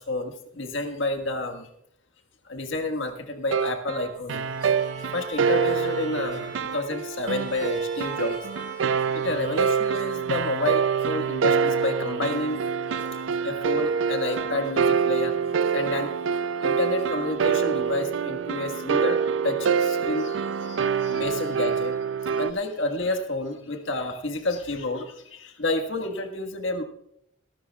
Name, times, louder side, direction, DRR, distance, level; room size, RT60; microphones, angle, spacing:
voice 1, 0.0-1.7 2.5-4.7 5.1-8.4 9.1-12.6 12.9-15.4 15.7-16.1 16.6-21.9 22.3-26.8, left 2 dB, 75° left, 5 dB, 1.5 m, -30 dB
sound 1, 3.5-22.5, right 6 dB, 75° right, 0.4 m, -26 dB
Bowed string instrument, 4.3-10.6, right 3 dB, 50° right, 2.9 m, -42 dB
23.5 x 13.0 x 2.3 m, 0.75 s
head